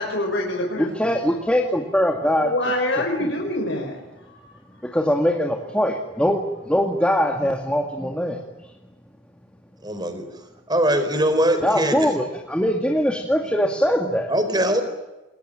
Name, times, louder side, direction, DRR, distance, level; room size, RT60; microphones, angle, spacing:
voice 1, 0.0-1.2 2.4-4.8 11.1-11.4, left 1 dB, 65° left, 1 dB, 5.1 m, -27 dB
voice 2, 0.8-2.5 3.2-3.3 4.9-8.4 11.6-14.3, equal, 5° left, 1 dB, 2.2 m, -22 dB
voice 3, 9.8-10.2 10.7-12.1 14.3-14.8, right 1 dB, 20° right, 9 dB, 4.4 m, -21 dB
27.5 x 21.5 x 8.9 m, 1.1 s
head